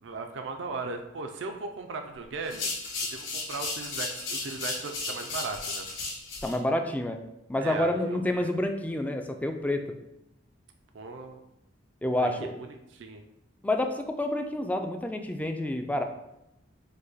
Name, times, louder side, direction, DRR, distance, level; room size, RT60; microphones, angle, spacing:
voice 1, 0.0-2.7 3.1-5.9 7.6-8.5 10.9-11.4 12.2-12.3 12.9-13.2, right 3 dB, 70° right, 4 dB, 0.4 m, -37 dB
sound 1, 2.4-6.5, left 3 dB, 85° left, 1.6 m, -34 dB
voice 2, 6.4-7.2 7.5-9.8 12.0-12.5 13.6-16.0, left 1 dB, 10° left, 5 dB, 0.3 m, -28 dB
5.2 x 2.2 x 4.0 m, 0.84 s
head